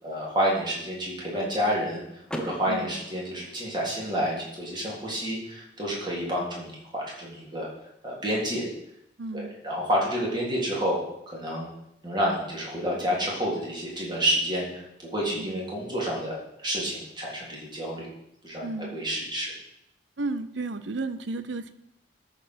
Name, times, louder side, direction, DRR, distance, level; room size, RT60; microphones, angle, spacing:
voice 1, 0.0-2.0 2.4-7.7 8.0-8.7 9.3-11.0 11.3-11.7 12.0-18.1 18.4-19.5, equal, 25° right, -4 dB, 3.5 m, -29 dB
Car / Door, 2.3-4.2, equal, 5° left, 0.9 m, -40 dB
voice 2, 2.7-3.0 9.2-9.6 15.4-15.7 18.6-19.0 20.2-21.7, right 3 dB, 75° right, 13 dB, 0.7 m, -33 dB
13.0 x 5.1 x 6.2 m, 0.81 s
head